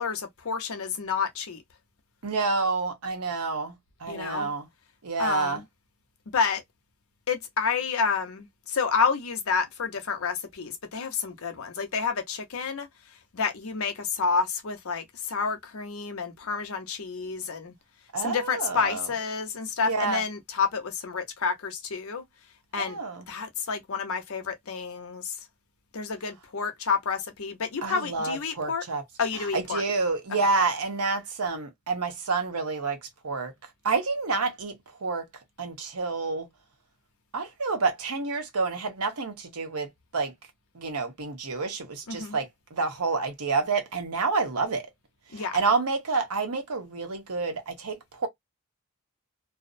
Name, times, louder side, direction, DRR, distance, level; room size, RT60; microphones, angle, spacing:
voice 1, 0.0-1.6 4.1-4.5 5.2-5.6 6.3-6.6 7.3-12.9 13.3-17.7 18.2-22.2 22.7-23.0 23.3-25.4 25.9-28.8 29.2-29.8 42.1-42.4 45.3-45.6, left 5 dB, 65° left, 0.7 m, -29 dB
voice 2, 2.2-4.7 5.0-5.6 18.1-19.1 19.8-20.2 22.8-23.3 27.8-29.0 29.5-33.0 33.2-33.5 33.8-35.3 35.6-36.5 37.3-40.3 40.7-44.8 45.3-48.3, right 4 dB, 85° right, 0.9 m, -28 dB
2.5 x 2.0 x 2.5 m
head